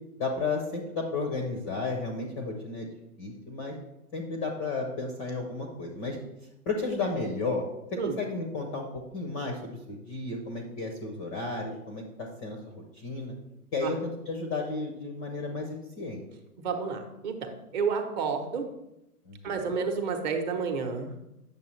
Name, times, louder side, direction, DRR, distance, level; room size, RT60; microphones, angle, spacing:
voice 1, 0.2-2.9 3.2-3.7 4.1-6.2 6.7-7.6 7.9-13.4 13.7-16.2 19.3-19.4, left 3 dB, 15° left, 2 dB, 0.5 m, -33 dB
voice 2, 16.6-18.7 19.4-21.1, right 5 dB, 30° right, 5 dB, 0.9 m, -30 dB
8.7 x 6.6 x 3.1 m, 0.88 s
hypercardioid pair, 135°, 46 cm